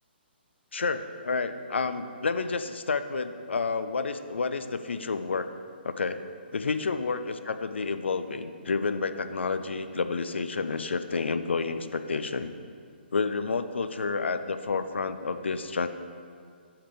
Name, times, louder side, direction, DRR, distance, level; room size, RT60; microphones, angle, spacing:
voice 1, 0.7-5.5 5.8-6.2 6.5-12.5 13.1-15.9, left 4 dB, 80° left, 10 dB, 0.5 m, -30 dB
5.7 x 5.0 x 6.6 m, 2.2 s
hypercardioid pair, 140°, 6 cm